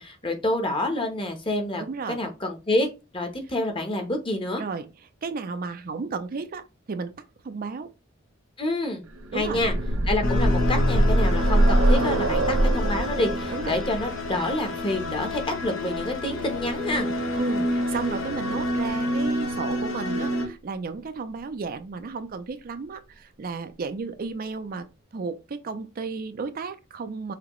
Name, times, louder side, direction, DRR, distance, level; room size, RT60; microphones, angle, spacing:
voice 1, 0.0-2.9 3.1-4.6 8.6-9.0 9.3-9.7 10.1-12.4 12.7-17.1, left 1 dB, 25° left, 1.0 m, -28 dB
voice 2, 1.8-2.2 4.6-4.9 5.2-7.2 7.4-7.9 9.3-9.6 13.5-13.8 17.3-24.9 25.1-27.4, right 4 dB, 45° right, 0.4 m, -33 dB
sound 1, 9.2-17.0 18.1-18.2 18.6-18.7, right 1 dB, 90° right, 0.6 m, -24 dB
sound 2, 10.2-20.5, left 1 dB, 75° left, 1.2 m, -28 dB
5.9 x 2.8 x 3.0 m
head